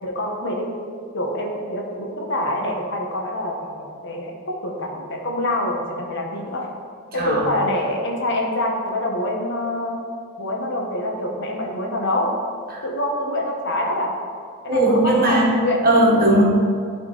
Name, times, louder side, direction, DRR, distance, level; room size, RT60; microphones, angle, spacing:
voice 1, 0.0-0.7 1.1-6.7 7.1-10.0 10.4-12.4 12.8-14.2 14.6-15.8, left 1 dB, 55° left, 0 dB, 1.1 m, -25 dB
voice 2, 14.7-15.5 15.8-16.4, right 1 dB, 45° right, -3 dB, 1.3 m, -17 dB
11.0 x 3.7 x 4.0 m, 2.2 s
head